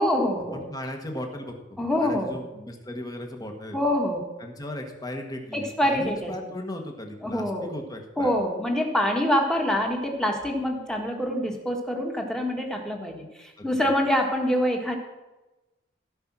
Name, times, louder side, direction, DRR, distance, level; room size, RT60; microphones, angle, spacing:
voice 1, 0.0-0.6 1.8-2.4 3.7-4.3 5.5-6.3 7.2-7.7 8.2-15.0, equal, 5° left, 2 dB, 1.6 m, -25 dB
voice 2, 0.5-3.8 4.4-8.4 13.6-13.8, left 1 dB, 20° left, 4 dB, 1.5 m, -37 dB
16.0 x 5.4 x 6.1 m, 1.1 s
head